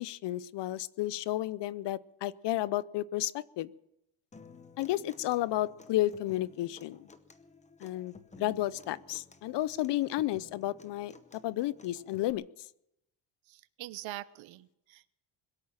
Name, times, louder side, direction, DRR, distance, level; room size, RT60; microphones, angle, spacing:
voice 1, 0.0-3.7 4.8-7.1 7.8-11.1 11.4-12.4, left 15 dB, 60° left, 20 dB, 0.6 m, -32 dB
Human voice / Acoustic guitar, 4.3-12.3, left 4 dB, 15° left, 0.8 m, -55 dB
voice 2, 13.8-15.1, right 16 dB, 70° right, 17 dB, 0.8 m, -43 dB
21.5 x 8.7 x 7.4 m, 0.82 s
cardioid pair, 145°, 47 cm